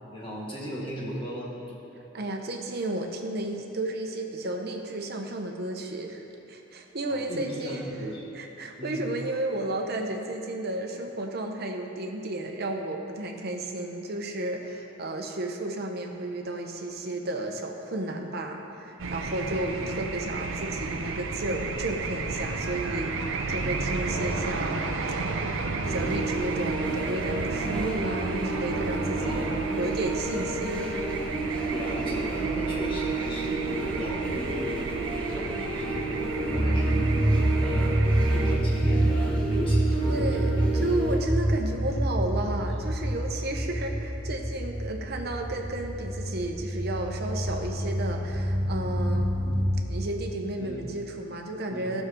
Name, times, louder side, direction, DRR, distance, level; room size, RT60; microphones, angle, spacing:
voice 1, 0.1-1.5 7.1-8.2 8.8-9.1 19.8-20.1 24.0-24.6 29.2-29.7 31.7-37.1 37.6-38.0 38.3-40.8 50.6-50.9 51.7-51.9, equal, 25° left, -5 dB, 1.9 m, -37 dB
voice 2, 2.1-7.9 8.3-24.8 25.8-31.0 31.4-31.7 39.9-49.3 49.9-52.0, right 2 dB, 50° right, 3 dB, 0.9 m, -32 dB
sound 1, 19.0-38.6, right 3 dB, 80° right, 0.6 m, -32 dB
sound 2, 25.8-41.2, right 3 dB, 5° left, 1.4 m, -32 dB
sound 3, 36.5-49.7, right 1 dB, 20° right, 1.6 m, -27 dB
14.0 x 6.4 x 3.8 m, 3.0 s
head